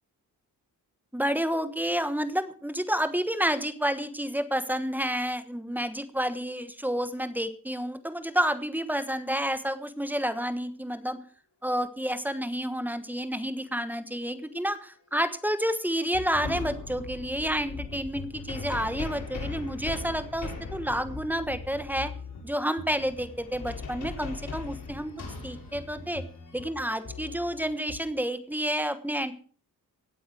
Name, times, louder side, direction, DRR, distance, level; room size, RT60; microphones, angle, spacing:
voice 1, 1.1-11.2 11.6-22.1 22.4-25.1 25.4-26.2 26.5-29.3, equal, 5° right, 11 dB, 1.2 m, -30 dB
sound 1, 15.6-15.8 16.1-28.0, left 4 dB, 60° left, 5.9 m, -39 dB
17.0 x 8.4 x 6.2 m, 0.44 s
wide cardioid pair, 140°, 36 cm